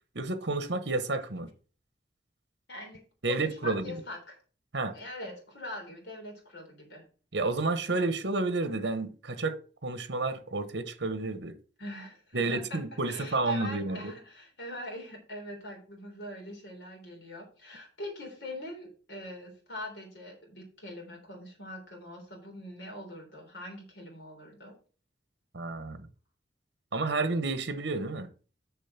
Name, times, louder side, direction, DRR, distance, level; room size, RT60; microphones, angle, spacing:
voice 1, 0.1-1.5 3.2-4.0 4.7-4.9 7.3-11.5 12.3-14.1 25.5-26.1 26.9-28.3, right 3 dB, 80° right, 1.1 m, -30 dB
voice 2, 2.7-4.4 4.8-7.0 11.8-12.8 13.1-24.8, left 1 dB, 75° left, 3.8 m, -43 dB
7.0 x 6.5 x 5.8 m
head